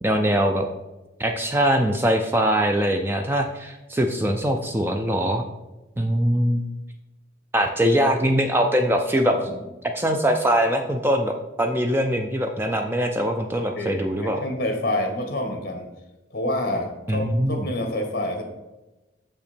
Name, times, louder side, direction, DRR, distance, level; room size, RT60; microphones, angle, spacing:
voice 1, 0.0-0.6 1.2-5.4 6.0-6.6 7.5-9.3 9.9-14.4 17.1-17.6, equal, 10° right, 4 dB, 0.4 m, -22 dB
voice 2, 9.2-9.6 13.8-15.9 16.3-18.4, left 1 dB, 50° left, 3 dB, 1.5 m, -28 dB
6.8 x 5.7 x 4.3 m, 1.1 s
head